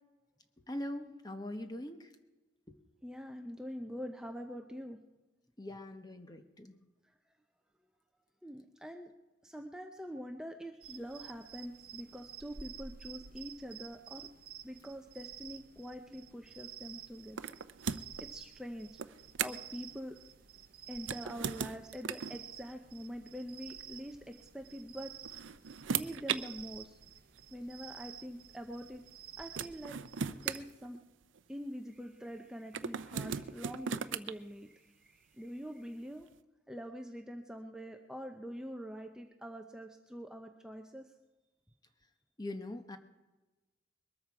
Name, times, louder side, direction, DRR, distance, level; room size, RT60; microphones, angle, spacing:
voice 1, 0.7-2.1 2.7-2.8 5.6-6.8 42.4-43.0, left 1 dB, 20° left, 7 dB, 1.1 m, -42 dB
voice 2, 3.0-5.0 8.4-9.1 9.4-14.3 14.6-17.4 18.2-19.0 19.4-20.2 20.9-25.1 25.9-27.0 27.5-29.0 29.4-30.0 30.4-31.0 31.5-36.3 36.7-41.1, equal, 5° right, 4 dB, 0.6 m, -45 dB
sound 1, 10.8-30.6, right 9 dB, 50° right, 0.8 m, -52 dB
sound 2, 17.4-18.2 19.0-19.7 21.0-22.4 23.7-23.8 25.0-26.4 27.4-27.5 29.1-29.2 29.6-31.4 32.7-34.3, right 7 dB, 85° right, 0.6 m, -37 dB
22.0 x 13.5 x 4.8 m, 1.1 s
head